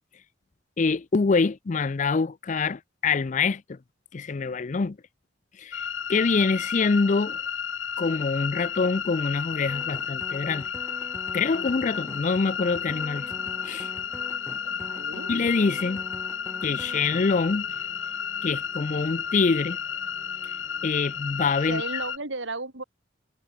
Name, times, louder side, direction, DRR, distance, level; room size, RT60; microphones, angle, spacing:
voice 1, 0.8-3.8 4.1-5.0 5.6-5.8 6.1-7.4 8.0-10.7 11.3-13.3 13.6-13.9 15.3-16.0 16.6-17.7 18.4-19.8 20.8-21.8, left 4 dB, 40° left, 0.5 m, -25 dB
sound 1, 5.7-22.2, left 7 dB, 80° left, 1.8 m, -32 dB
sound 2, 9.7-17.3, left 1 dB, 15° left, 1.0 m, -43 dB
sound 3, 12.8-21.2, equal, 5° right, 3.3 m, -54 dB
voice 2, 14.7-15.3 21.7-22.8, right 3 dB, 75° right, 3.9 m, -34 dB
head